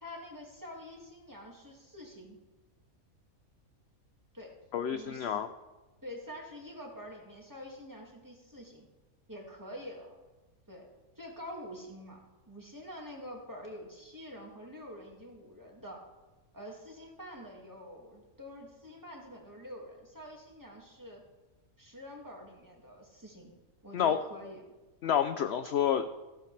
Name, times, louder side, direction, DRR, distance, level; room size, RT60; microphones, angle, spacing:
voice 1, 0.0-2.4 4.3-4.6 4.9-5.4 6.0-8.9 9.3-10.1 10.7-10.9 11.2-12.2 12.5-16.1 16.5-21.2 21.8-23.5 23.8-24.6, equal, 15° right, -1 dB, 2.0 m, -46 dB
voice 2, 4.7-5.5 23.9-24.2 25.0-26.1, left 9 dB, 65° left, 10 dB, 0.7 m, -29 dB
15.0 x 12.0 x 3.3 m, 1.1 s
omnidirectional pair, 1.5 m